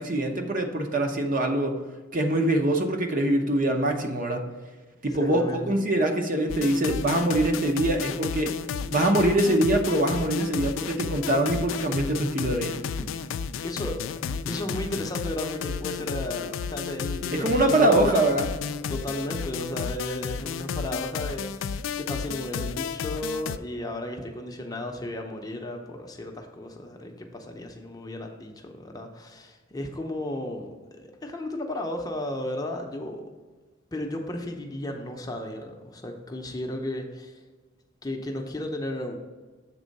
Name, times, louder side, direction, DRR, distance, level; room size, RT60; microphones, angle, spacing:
voice 1, 0.0-1.8 2.1-4.5 5.0-8.5 8.9-12.8 17.3-18.5, right 1 dB, 45° right, 4 dB, 0.8 m, -23 dB
voice 2, 5.1-5.8 13.0-13.1 13.6-14.0 14.5-18.5 18.9-33.2 33.9-37.4 38.0-39.1, left 1 dB, 20° left, 3 dB, 0.6 m, -34 dB
sound 1, 6.5-23.6, left 6 dB, 75° left, 0.3 m, -33 dB
7.5 x 3.6 x 5.2 m, 1.3 s
head